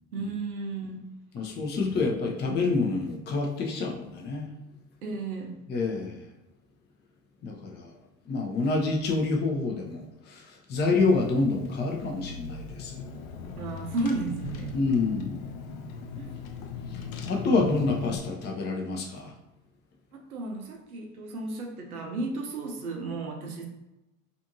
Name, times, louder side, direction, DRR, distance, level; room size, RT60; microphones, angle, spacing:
voice 1, 0.1-1.1 5.0-5.5 13.6-14.7 16.2-16.3 20.1-23.7, right 3 dB, 85° right, 3 dB, 0.6 m, -33 dB
voice 2, 1.3-4.5 5.7-6.2 7.4-7.9 8.3-10.4 10.7-13.0 14.7-15.4 17.3-19.3, left 3 dB, 25° left, 1 dB, 0.5 m, -27 dB
Car / Engine, 11.0-18.2, left 5 dB, 75° left, 0.6 m, -39 dB
2.5 x 2.5 x 2.7 m, 0.97 s
hypercardioid pair, 75°, 42 cm